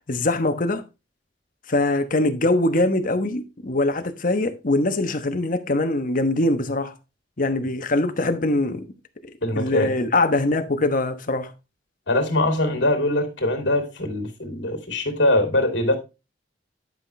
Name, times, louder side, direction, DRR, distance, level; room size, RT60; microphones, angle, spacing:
voice 1, 0.1-0.8 1.7-6.9 7.4-8.9 9.5-11.5, left 2 dB, 45° left, 1.1 m, -22 dB
voice 2, 9.4-9.9 12.1-16.0, left 1 dB, 75° left, 2.8 m, -22 dB
11.0 x 5.7 x 3.3 m
head